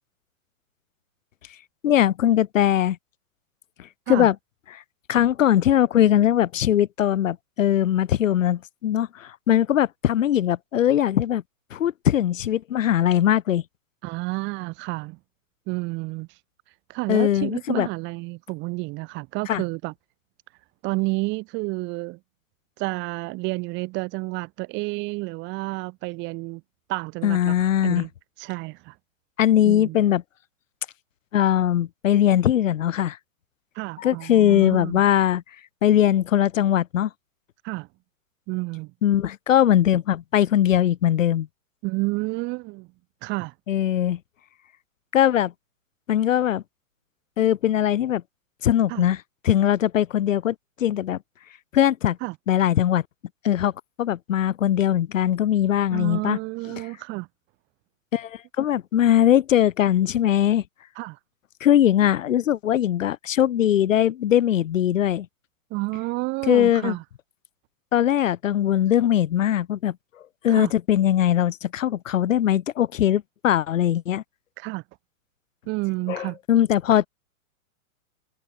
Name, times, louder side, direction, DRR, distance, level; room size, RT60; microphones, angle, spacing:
voice 1, 1.8-3.0 4.1-4.4 4.7-4.8 5.1-11.4 11.7-13.6 17.1-17.9 19.5-19.6 27.2-28.1 29.4-30.2 31.3-33.2 34.0-35.4 35.8-37.1 39.0-41.5 43.7-44.2 45.1-45.5 46.1-46.6 47.4-48.2 48.6-51.2 51.7-52.2 52.5-53.0 53.4-53.7 54.0-56.4 58.1-60.6 61.6-65.3 66.5-67.0 67.9-70.0 70.4-74.2 76.1-77.1, left 11 dB, 60° left, 7.0 m, -20 dB
voice 2, 14.0-15.2 15.7-16.3 16.9-19.9 20.8-22.2 22.8-26.6 26.9-28.1 28.4-28.9 29.6-30.0 33.8-35.0 37.6-37.9 38.5-38.9 41.8-42.9 43.2-43.5 48.9-49.1 52.2-52.4 55.9-57.3 61.0-61.2 65.7-67.0 70.5-70.7 74.6-74.8 75.7-76.4, right 24 dB, 25° right, 7.1 m, -30 dB
hypercardioid pair, 170°, 44 cm